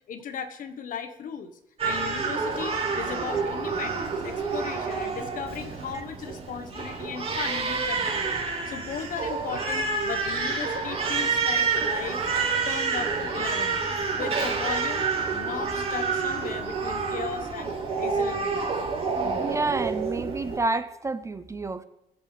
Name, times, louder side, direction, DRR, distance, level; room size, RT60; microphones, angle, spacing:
voice 1, 0.1-1.5 1.8-8.4 8.6-12.2 12.6-13.8 14.1-15.0 15.3-18.9, left 6 dB, 60° left, 8 dB, 1.3 m, -36 dB
Crying sobbing, 1.8-20.6, right 4 dB, 40° right, 4.4 m, -28 dB
voice 2, 19.4-21.8, right 3 dB, 20° right, 12 dB, 0.5 m, -29 dB
20.0 x 8.1 x 3.4 m, 0.88 s
cardioid pair, 115°, 16 cm